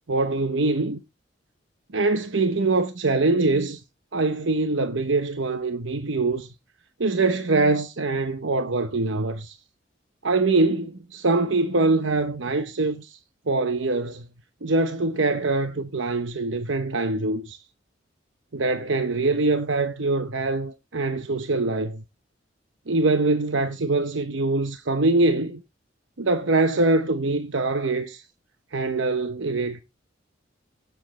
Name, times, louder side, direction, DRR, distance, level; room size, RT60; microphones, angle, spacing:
voice 1, 0.1-1.0 1.9-3.8 4.1-6.5 7.0-9.6 10.2-13.2 13.5-14.2 14.6-17.6 18.5-22.0 22.9-25.6 26.2-28.2 28.7-29.8, right 3 dB, 75° right, 1.0 m, -23 dB
18.0 x 7.3 x 3.1 m
head